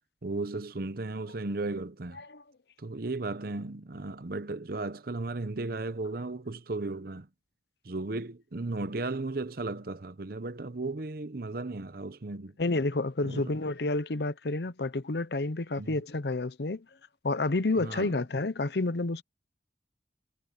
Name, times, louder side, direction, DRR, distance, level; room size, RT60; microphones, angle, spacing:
voice 1, 0.2-2.2 2.8-7.3 7.8-12.5 13.2-13.5 15.8-16.0 17.8-18.2, right 2 dB, 55° right, 0.9 m, -35 dB
voice 2, 12.6-16.9 17.2-19.2, left 2 dB, 65° left, 0.8 m, -30 dB
head